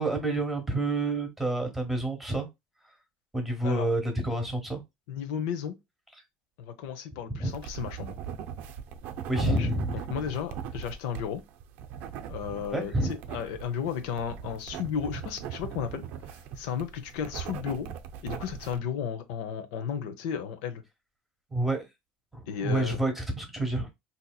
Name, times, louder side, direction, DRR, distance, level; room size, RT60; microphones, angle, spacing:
voice 1, 0.0-2.5 3.3-4.8 7.3-7.5 9.3-10.0 12.7-13.1 21.5-21.9 22.3-23.9, right 2 dB, 5° right, 1.1 m, -28 dB
voice 2, 5.1-5.8 6.6-8.2 9.4-9.7 10.1-11.4 12.3-17.9 18.2-20.8 22.5-23.0, left 8 dB, 90° left, 0.7 m, -34 dB
sound 1, 7.5-18.8, right 8 dB, 55° right, 0.5 m, -40 dB
4.1 x 2.8 x 2.3 m
cardioid pair, 165°, 3 cm